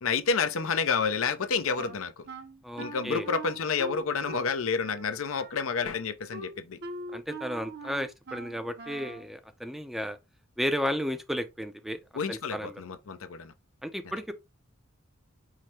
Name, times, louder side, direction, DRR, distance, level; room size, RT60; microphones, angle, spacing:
voice 1, 0.0-2.3 2.8-6.8 12.1-13.5, left 5 dB, 90° left, 0.6 m, -29 dB
Wind instrument woodwind instrument, 1.8-9.3, right 2 dB, 55° right, 0.7 m, -42 dB
voice 2, 2.6-3.3 7.1-10.2 10.6-12.0 12.3-12.8 13.8-14.3, equal, ahead, 0.4 m, -33 dB
4.9 x 2.1 x 4.3 m
head